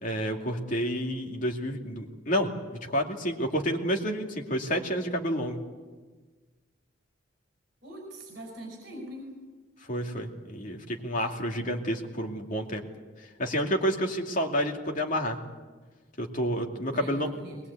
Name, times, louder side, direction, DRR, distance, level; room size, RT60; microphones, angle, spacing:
voice 1, 0.0-5.6 9.9-12.8 13.4-15.4 16.2-17.3, equal, 40° left, 2 dB, 2.5 m, -29 dB
voice 2, 7.8-9.3 16.9-17.6, equal, 50° right, 0 dB, 5.3 m, -42 dB
21.5 x 21.0 x 8.4 m, 1.4 s
head